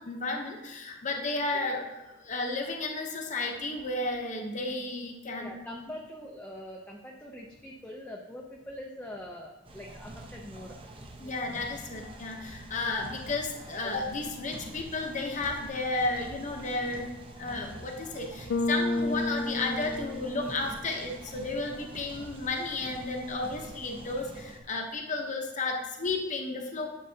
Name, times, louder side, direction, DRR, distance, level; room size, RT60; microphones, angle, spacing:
voice 1, 0.0-5.5 11.2-26.9, left 3 dB, 35° left, 2 dB, 0.8 m, -33 dB
voice 2, 5.4-10.8 11.2-11.3, left 1 dB, 5° left, -1 dB, 0.5 m, -43 dB
sound 1, 9.7-24.6, right 1 dB, 25° right, 0.7 m, -46 dB
Bass guitar, 18.5-20.8, left 2 dB, 70° left, 0.4 m, -31 dB
11.0 x 6.7 x 2.8 m, 1.1 s
head